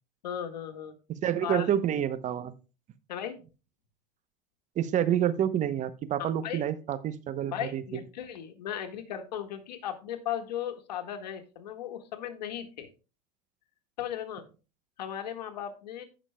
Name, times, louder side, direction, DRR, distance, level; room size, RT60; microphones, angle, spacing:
voice 1, 0.2-0.9 1.4-1.7 3.1-3.3 6.2-6.6 7.5-12.9 14.0-14.4 15.0-16.0, left 10 dB, 80° left, 5 dB, 1.7 m, -36 dB
voice 2, 1.1-2.5 4.8-8.0, right 10 dB, 35° right, 13 dB, 0.9 m, -28 dB
17.0 x 6.1 x 2.3 m, 0.33 s
hypercardioid pair, 105°, 21 cm